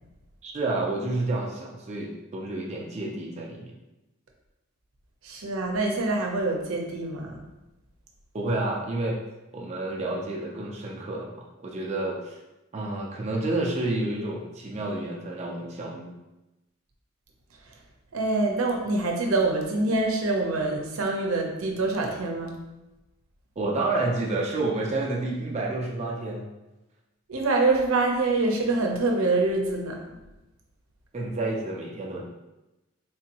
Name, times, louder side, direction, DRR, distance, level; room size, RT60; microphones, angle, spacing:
voice 1, 0.4-3.7 8.3-9.2 9.5-12.4 12.7-16.1 23.6-26.4 31.1-32.2, right 2 dB, 30° right, -2 dB, 0.4 m, -29 dB
voice 2, 5.2-7.4 18.1-22.6 27.3-30.2, right 2 dB, 90° right, 1 dB, 0.6 m, -25 dB
3.7 x 2.6 x 2.8 m, 1.0 s
head